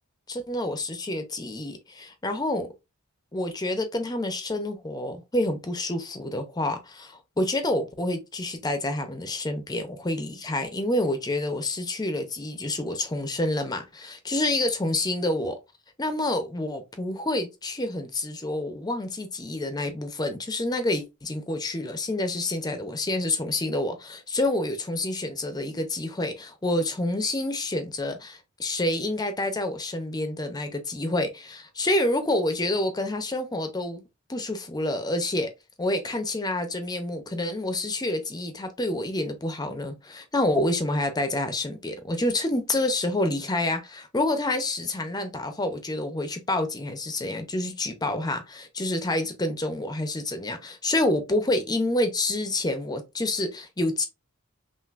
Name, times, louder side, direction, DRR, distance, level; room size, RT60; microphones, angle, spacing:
voice 1, 0.3-2.7 3.3-15.6 16.0-34.0 34.3-35.5 35.8-54.1, left 1 dB, 20° left, 0.6 m, -28 dB
5.8 x 2.5 x 2.4 m
head